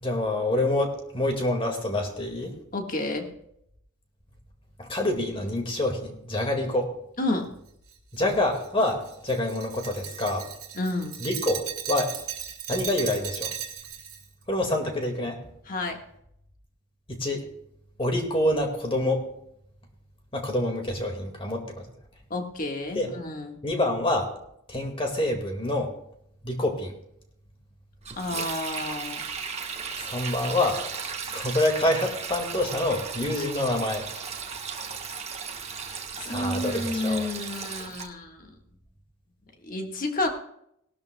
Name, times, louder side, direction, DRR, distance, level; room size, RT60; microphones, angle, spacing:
voice 1, 0.0-2.5 4.8-6.9 8.1-10.5 11.2-12.1 12.7-13.5 14.5-15.4 17.1-17.5 18.0-19.3 20.3-21.9 22.9-23.1 23.6-24.3 24.7-25.9 26.4-26.9 30.0-30.8 31.3-34.1 36.2-37.3, left 1 dB, 25° left, 3 dB, 1.8 m, -27 dB
voice 2, 2.7-3.3 7.2-7.5 10.7-11.2 15.7-16.0 22.3-23.6 28.2-29.2 36.3-38.5 39.6-40.3, left 2 dB, 40° left, 3 dB, 1.5 m, -30 dB
Glass, 7.9-14.2, right 10 dB, 90° right, 2.3 m, -36 dB
Sink (filling or washing), 28.0-38.1, right 6 dB, 30° right, 1.1 m, -36 dB
18.5 x 12.5 x 2.2 m, 0.75 s
head